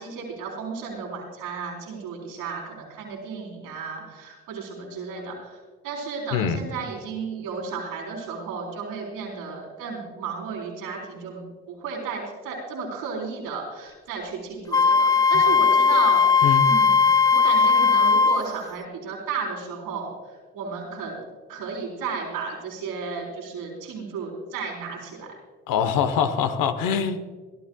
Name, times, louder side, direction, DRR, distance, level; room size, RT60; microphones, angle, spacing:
voice 1, 0.0-5.6 5.8-16.2 16.6-21.2 21.5-25.3, right 5 dB, 85° right, -2 dB, 4.1 m, -33 dB
Wind instrument woodwind instrument, 14.7-18.4, left 5 dB, 10° left, 0.6 m, -18 dB
voice 2, 25.7-27.2, left 7 dB, 75° left, 10 dB, 1.1 m, -23 dB
26.5 x 12.5 x 2.3 m, 1.4 s
hypercardioid pair, 50°, 34 cm